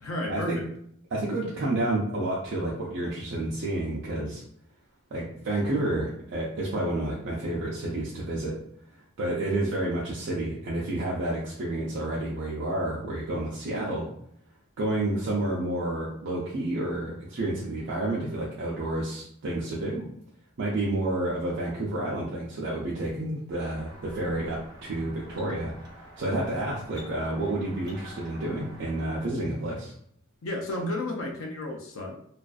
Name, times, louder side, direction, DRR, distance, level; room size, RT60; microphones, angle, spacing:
voice 1, 0.0-0.7 30.4-32.2, left 1 dB, 90° left, 2 dB, 0.4 m, -32 dB
voice 2, 1.1-4.4 5.1-8.5 9.2-14.1 14.8-20.0 20.6-29.9, right 1 dB, 65° right, -5 dB, 0.5 m, -30 dB
sound 1, 23.5-29.2, right 1 dB, 20° right, 0.7 m, -48 dB
2.4 x 2.3 x 2.3 m, 0.69 s
head